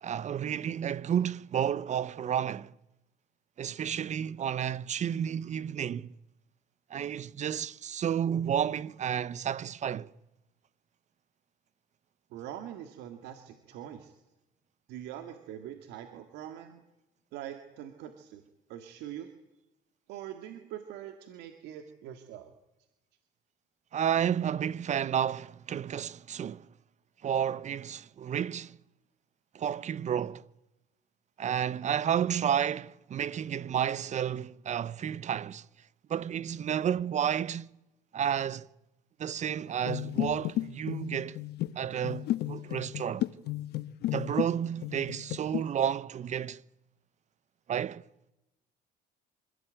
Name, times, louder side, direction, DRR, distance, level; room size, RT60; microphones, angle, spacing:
voice 1, 0.0-2.7 3.6-6.1 6.9-10.1 23.9-26.7 27.2-28.8 29.5-30.4 31.4-35.6 36.1-37.7 38.1-38.7 39.2-41.4 41.8-43.3 44.1-46.6 47.7-48.0, right 9 dB, 45° right, 0.9 m, -31 dB
voice 2, 12.3-14.2 14.9-16.8 17.3-18.4 18.7-19.3 20.1-22.5, right 11 dB, 90° right, 2.1 m, -43 dB
sound 1, 39.8-44.5 44.8-45.6, left 15 dB, 75° left, 1.2 m, -33 dB
26.0 x 17.0 x 9.1 m
cardioid pair, 110°, 17 cm